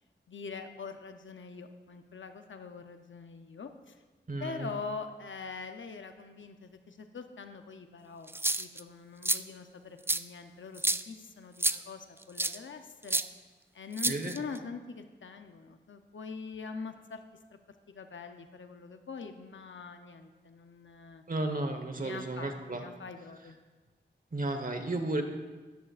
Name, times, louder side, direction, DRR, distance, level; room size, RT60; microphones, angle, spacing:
voice 1, 0.3-4.0 4.4-8.3 8.6-13.2 13.7-17.2 17.5-17.6 17.9-21.2 22.0-23.6, left 5 dB, 80° left, 7 dB, 0.7 m, -43 dB
voice 2, 4.3-4.7 14.0-14.3 21.3-22.8 24.3-25.2, right 2 dB, 45° right, 5 dB, 1.2 m, -33 dB
sound 1, 8.3-8.8 9.2-9.4 10.1-10.2 10.8-11.0 11.6-11.8 12.4-12.6 13.1-13.2 14.0-14.6, right 2 dB, 10° right, 0.3 m, -29 dB
13.0 x 11.0 x 2.5 m, 1.3 s
wide cardioid pair, 55°, 19 cm